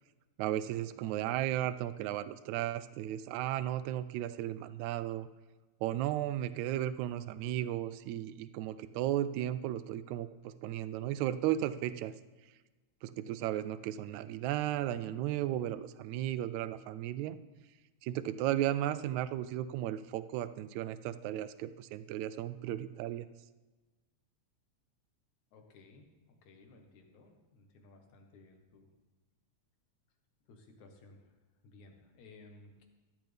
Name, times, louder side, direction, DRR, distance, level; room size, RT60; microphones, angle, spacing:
voice 1, 0.4-5.3 5.8-12.1 13.0-17.4 18.0-23.3, right 12 dB, 80° right, 14 dB, 1.8 m, -35 dB
voice 2, 25.5-28.9 30.5-32.9, left 3 dB, 75° left, 3 dB, 2.7 m, -58 dB
14.5 x 12.0 x 3.5 m, 1.2 s
omnidirectional pair, 3.4 m